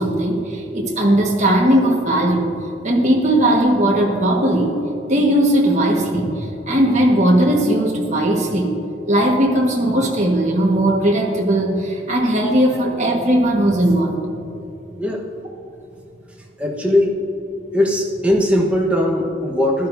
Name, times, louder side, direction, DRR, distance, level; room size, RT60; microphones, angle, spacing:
voice 1, 0.0-2.5 2.8-4.8 5.1-8.8 9.1-14.2, right 1 dB, 40° right, -1 dB, 1.5 m, -18 dB
voice 2, 16.6-17.1 17.7-19.9, left 1 dB, 5° right, -2 dB, 1.2 m, -19 dB
15.0 x 12.0 x 2.7 m, 2.7 s
head